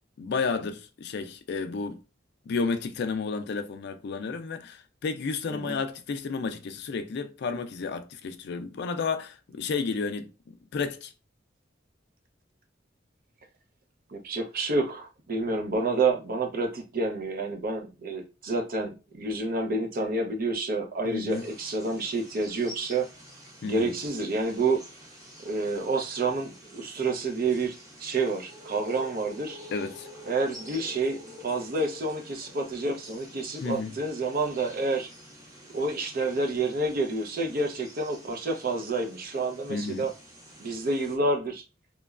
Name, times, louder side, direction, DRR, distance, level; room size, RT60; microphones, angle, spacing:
voice 1, 0.2-2.0 2.5-11.1 21.0-21.5 23.6-23.9 29.7-30.1 33.6-33.9 39.7-40.1, left 4 dB, 60° left, 0.4 m, -32 dB
voice 2, 14.1-23.1 23.6-24.8 25.4-29.6 30.3-35.1 35.7-40.1 40.6-41.6, right 3 dB, 50° right, 0.6 m, -29 dB
sound 1, 21.3-41.2, equal, 20° right, 0.8 m, -48 dB
2.9 x 2.2 x 2.4 m
head